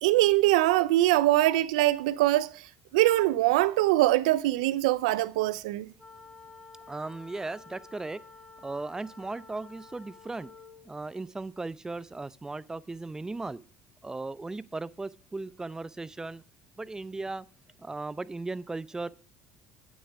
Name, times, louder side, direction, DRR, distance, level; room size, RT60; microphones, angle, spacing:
voice 1, 0.0-2.5 2.9-5.9, right 16 dB, 85° right, 0.4 m, -23 dB
sound 1, 6.0-10.9, left 4 dB, 5° left, 2.0 m, -51 dB
voice 2, 6.9-8.2 8.6-10.5 10.8-13.6 14.0-16.4 16.8-17.5 17.8-19.1, right 3 dB, 15° right, 0.6 m, -37 dB
8.7 x 6.8 x 4.9 m
hypercardioid pair, 75°, 4 cm